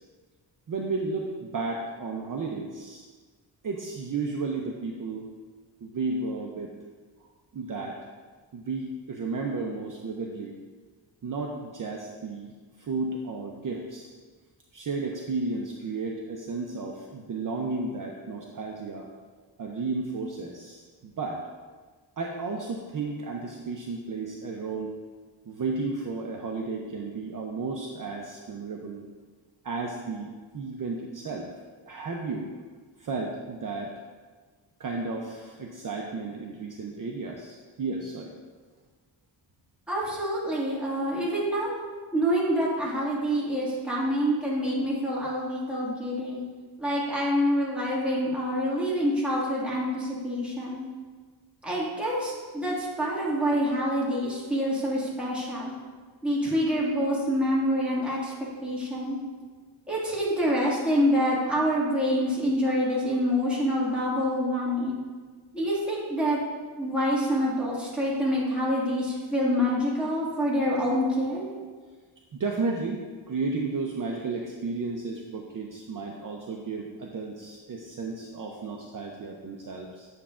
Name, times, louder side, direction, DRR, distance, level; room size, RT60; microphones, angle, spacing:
voice 1, 0.7-3.1 3.6-5.3 5.8-6.8 7.5-8.0 8.5-10.6 11.2-12.5 12.8-14.1 14.7-19.1 19.6-21.4 22.2-24.9 25.5-29.0 29.6-31.5 31.9-32.5 33.0-33.9 34.8-38.3 72.3-80.1, right 3 dB, 45° right, 0 dB, 0.6 m, -33 dB
voice 2, 39.9-41.7 42.1-46.4 46.8-50.8 51.6-55.7 56.2-58.3 58.6-59.2 59.9-64.9 65.5-66.4 66.8-71.4, equal, ahead, -7 dB, 1.9 m, -26 dB
9.4 x 6.9 x 2.5 m, 1.5 s
wide cardioid pair, 130°, 47 cm